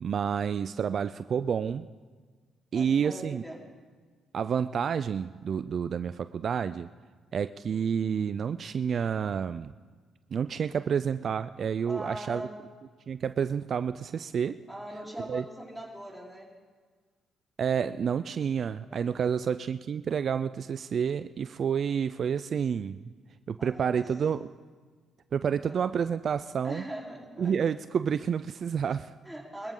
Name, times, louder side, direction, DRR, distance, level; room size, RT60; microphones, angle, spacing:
voice 1, 0.0-1.9 2.7-3.4 4.3-6.9 7.3-9.7 10.3-12.5 13.1-14.6 15.3-15.4 17.6-23.0 23.5-24.4 25.3-26.8 27.4-29.1, right 7 dB, 55° right, 13 dB, 0.4 m, -29 dB
voice 2, 2.7-3.6 11.8-12.6 14.7-16.5 18.9-19.4 23.6-24.1 25.7-25.8 26.6-27.5 29.2-29.7, right 1 dB, ahead, -3 dB, 4.0 m, -41 dB
24.0 x 13.5 x 3.8 m, 1.5 s
cardioid pair, 90°, 0 cm